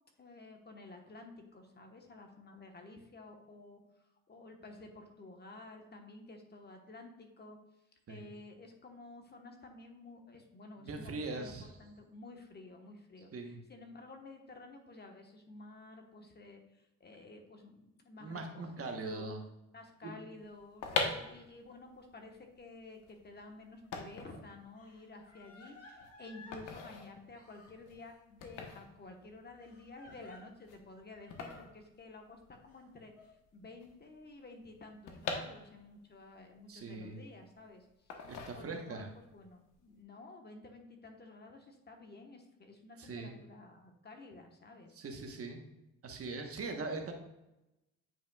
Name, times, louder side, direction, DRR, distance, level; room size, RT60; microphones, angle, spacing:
voice 1, 0.2-3.8 4.3-7.6 8.1-19.3 19.7-38.2 38.5-39.1 39.3-45.0 46.8-46.9, left 2 dB, 35° left, 3 dB, 1.2 m, -52 dB
voice 2, 10.8-11.7 13.3-13.6 18.2-19.4 20.0-20.1 36.7-37.2 38.3-39.1 43.0-43.4 45.0-45.6 46.0-47.1, right 3 dB, 50° right, 3 dB, 1.1 m, -41 dB
sound 1, 20.6-32.7 33.0-33.1 33.2-36.1 36.5-37.5 38.1-39.1 39.4-39.7, left 4 dB, 85° left, 1.1 m, -42 dB
Crying sobbing, 23.8-23.9 24.8-26.6 27.3-28.2 29.6-30.4 31.2-31.6 32.7-33.3, left 3 dB, 50° left, 1.8 m, -57 dB
9.0 x 5.2 x 2.3 m, 0.93 s
cardioid pair, 90°, 30 cm